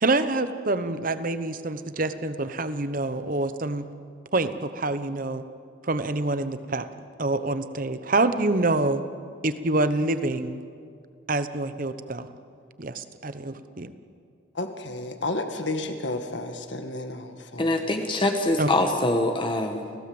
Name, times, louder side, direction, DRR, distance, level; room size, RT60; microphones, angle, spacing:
voice 1, 0.0-3.9 4.3-5.4 5.8-6.9 7.2-9.0 9.4-10.6 11.3-12.3 12.8-13.9 18.6-18.7, right 2 dB, 45° right, 11 dB, 1.0 m, -26 dB
voice 2, 14.5-17.9, left 2 dB, 65° left, 6 dB, 1.9 m, -32 dB
voice 3, 17.6-20.0, left 1 dB, 25° left, 4 dB, 1.4 m, -24 dB
30.0 x 16.5 x 7.9 m, 2.3 s
head